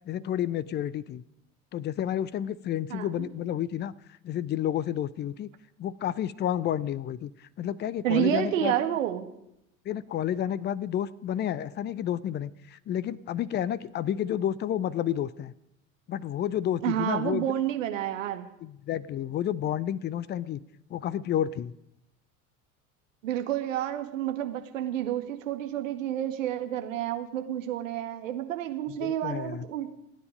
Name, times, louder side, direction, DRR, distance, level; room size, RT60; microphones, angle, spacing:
voice 1, 0.1-1.2 1.7-3.9 4.2-5.5 5.8-8.7 9.8-15.5 16.1-17.5 18.6-20.6 20.9-21.7 29.0-29.7, left 10 dB, 25° left, 22 dB, 0.7 m, -30 dB
voice 2, 2.9-3.3 8.0-9.3 16.8-18.5 23.2-29.9, right 11 dB, 65° right, 7 dB, 1.9 m, -29 dB
28.0 x 9.8 x 5.1 m, 0.82 s
figure-of-eight pair, 75°, 42 cm